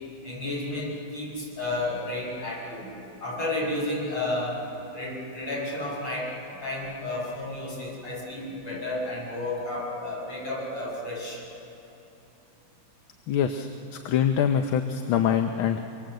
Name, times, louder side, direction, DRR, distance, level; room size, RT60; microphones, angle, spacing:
voice 1, 0.2-2.9 3.2-4.7 4.9-11.4, left 2 dB, 65° left, -4 dB, 7.7 m, -32 dB
voice 2, 13.3-15.8, left 8 dB, 85° left, 6 dB, 1.7 m, -24 dB
26.5 x 24.0 x 7.9 m, 3.0 s
omnidirectional pair, 2.2 m